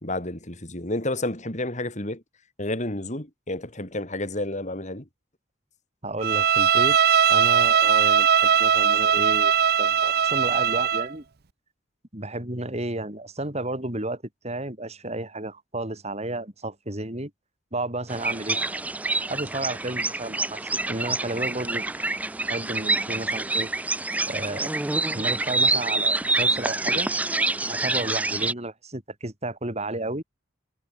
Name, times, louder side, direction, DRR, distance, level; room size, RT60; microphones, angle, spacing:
voice 1, 0.0-2.2 2.6-5.1, left 1 dB, 40° left, 4.6 m, -30 dB
voice 2, 6.0-7.0 7.3-9.5 9.8-11.2 12.1-17.3 17.7-18.6 19.3-22.0 22.5-23.7 24.3-24.8 25.1-27.1 27.7-30.2, right 2 dB, 35° right, 4.3 m, -32 dB
Bowed string instrument, 6.2-11.1, right 8 dB, 55° right, 0.7 m, -20 dB
sound 1, 18.1-28.5, right 2 dB, 10° right, 0.3 m, -26 dB
head